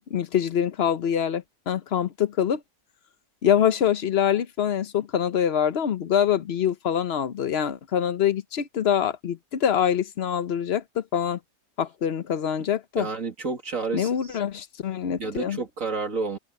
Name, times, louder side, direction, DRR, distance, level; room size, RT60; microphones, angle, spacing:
voice 1, 0.1-2.6 3.4-11.4 11.8-13.1 13.9-15.6, left 9 dB, 50° left, 0.9 m, -25 dB
voice 2, 13.0-14.4 15.2-16.4, right 4 dB, 55° right, 2.8 m, -30 dB
open air
omnidirectional pair, 1.7 m